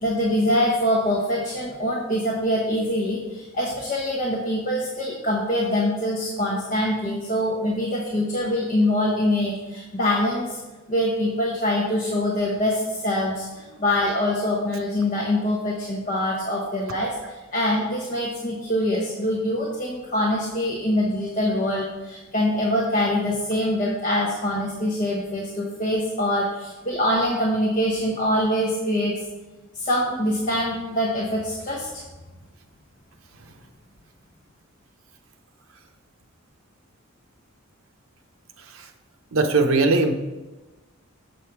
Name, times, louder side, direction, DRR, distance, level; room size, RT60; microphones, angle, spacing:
voice 1, 0.0-10.6 10.9-29.1 29.7-32.0, left 1 dB, 40° left, -3 dB, 1.0 m, -24 dB
voice 2, 38.6-38.9 39.3-40.2, right 3 dB, 80° right, 6 dB, 0.8 m, -21 dB
7.2 x 5.4 x 4.5 m, 1.2 s
head